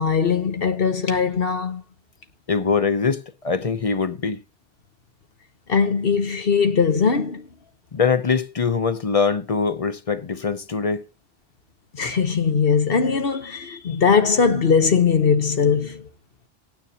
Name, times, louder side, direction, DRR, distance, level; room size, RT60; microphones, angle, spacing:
voice 1, 0.0-1.8 5.7-7.4 11.9-16.0, left 6 dB, 60° left, 1.3 m, -20 dB
voice 2, 2.5-4.4 7.9-11.1, left 5 dB, 40° left, 0.7 m, -23 dB
18.0 x 9.6 x 2.9 m
omnidirectional pair, 1.1 m